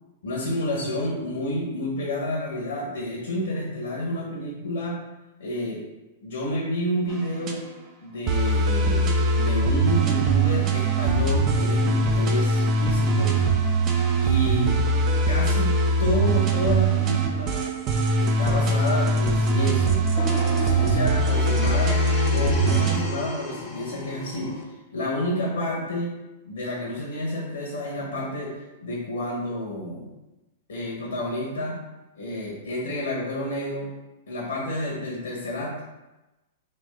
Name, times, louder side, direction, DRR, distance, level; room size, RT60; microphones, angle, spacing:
voice 1, 0.2-5.0 5.4-5.8 6.2-7.6 8.0-13.4 14.2-14.8 15.3-17.6 18.2-20.0 20.6-22.0 22.3-24.6 24.9-26.1 26.4-28.6 28.8-30.1 30.7-31.8 32.1-33.9 34.3-35.8, left 1 dB, 70° left, -3 dB, 0.9 m, -29 dB
sound 1, 7.1-7.5 8.3-23.0, right 2 dB, 35° right, 0.5 m, -22 dB
sound 2, 20.1-24.6, left 5 dB, 40° left, 0.6 m, -33 dB
3.3 x 2.5 x 3.7 m, 1.0 s
hypercardioid pair, 105°, 0 cm